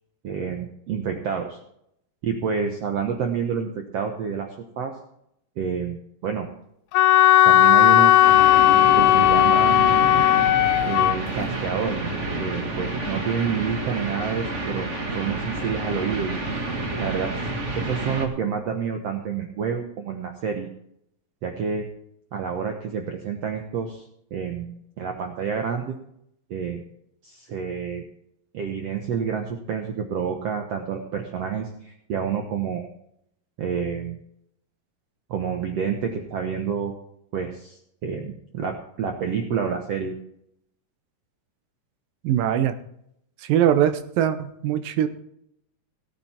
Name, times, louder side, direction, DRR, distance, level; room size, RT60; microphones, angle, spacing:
voice 1, 0.2-1.6 2.2-4.9 5.6-6.5 7.4-8.4 8.9-10.1 10.8-12.0 12.4-14.9 15.1-16.4 17.0-17.5 17.7-20.7 21.4-21.9 22.3-24.0 24.3-26.0 26.5-26.8 27.2-28.0 28.5-32.9 33.6-34.2 35.3-36.9 37.3-40.2, right 6 dB, 60° right, 4 dB, 1.8 m, -28 dB
Wind instrument woodwind instrument, 6.9-11.2, left 13 dB, 90° left, 2.3 m, -16 dB
sound 1, 8.2-18.3, right 2 dB, 30° right, 1.3 m, -29 dB
voice 2, 42.2-42.8 43.4-45.1, right 10 dB, 80° right, 10 dB, 2.7 m, -21 dB
18.0 x 9.1 x 4.4 m, 0.75 s
omnidirectional pair, 3.9 m